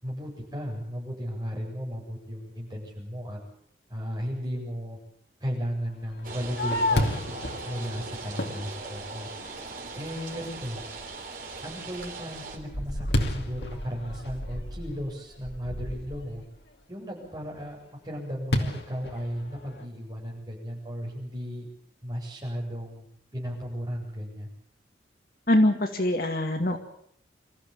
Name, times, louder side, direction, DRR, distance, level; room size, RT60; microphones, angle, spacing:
voice 1, 0.0-3.4 3.9-5.0 5.4-7.2 7.6-9.3 9.9-10.8 11.6-16.4 16.9-17.8 18.0-21.6 22.0-23.1 23.3-24.5, equal, 20° right, -2 dB, 7.9 m, -35 dB
Fireworks, 6.1-9.6 10.1-10.2 10.8-11.2 11.6-16.4 18.5-19.9, left 1 dB, 65° left, 2.6 m, -31 dB
sound 1, 6.2-12.6, right 3 dB, 50° right, 3.9 m, -40 dB
voice 2, 25.5-26.8, left 1 dB, 50° left, 5 dB, 2.2 m, -23 dB
26.0 x 14.5 x 8.8 m, 0.67 s
head